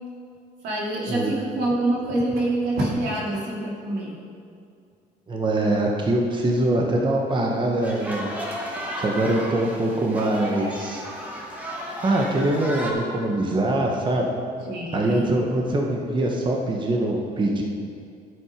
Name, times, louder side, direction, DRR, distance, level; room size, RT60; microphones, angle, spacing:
voice 1, 0.6-4.2 14.7-15.3, right 1 dB, 85° right, -4 dB, 2.4 m, -26 dB
voice 2, 5.3-8.3 9.0-11.0 12.0-14.3 14.9-17.6, right 1 dB, 30° right, 0 dB, 1.2 m, -23 dB
sound 1, 7.8-12.9, equal, 10° right, 1.7 m, -34 dB
9.8 x 7.8 x 5.1 m, 2.3 s
cardioid pair, 110°, 17 cm